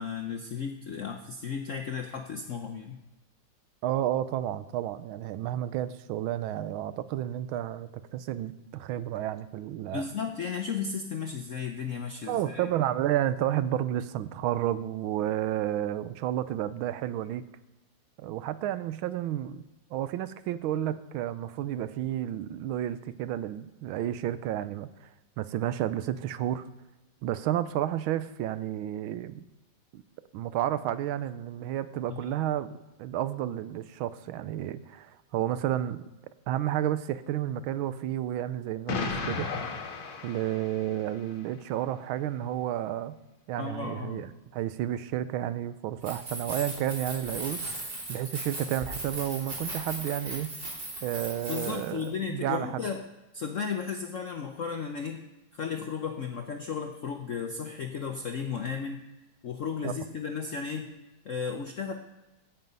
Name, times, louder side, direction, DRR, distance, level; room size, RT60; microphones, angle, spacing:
voice 1, 0.0-3.0 9.9-12.7 32.1-32.2 43.6-44.3 51.5-53.0 53.3-55.2 55.5-59.0 59.4-60.9 61.2-61.9, left 6 dB, 65° left, 4 dB, 0.7 m, -34 dB
voice 2, 3.8-10.0 12.3-17.4 18.2-19.6 19.9-25.1 25.4-26.6 27.2-29.4 29.9-30.0 30.3-32.7 33.0-36.0 36.5-39.5 40.2-43.2 43.5-50.5 51.0-52.9 59.8-59.9, right 12 dB, 80° right, 14 dB, 1.4 m, -31 dB
Explosion, 38.9-41.1, left 4 dB, 90° left, 2.1 m, -34 dB
Keys jangling, 45.9-52.1, right 2 dB, 45° right, 4.0 m, -38 dB
16.5 x 5.6 x 5.4 m, 1.1 s
omnidirectional pair, 2.3 m